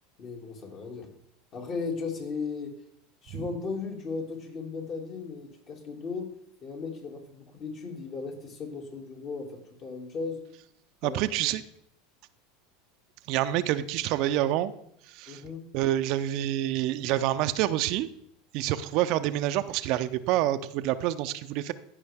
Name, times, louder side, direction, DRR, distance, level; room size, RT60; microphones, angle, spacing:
voice 1, 0.2-1.1 1.5-2.7 3.2-6.3 6.6-10.4 11.0-11.2 15.3-15.6, left 4 dB, 45° left, 2 dB, 2.3 m, -36 dB
voice 2, 11.0-11.6 13.3-14.7 15.1-15.4 15.7-18.1 18.5-21.7, right 13 dB, 60° right, 12 dB, 0.5 m, -27 dB
14.5 x 5.4 x 3.5 m, 0.71 s
hypercardioid pair, 90°, 0 cm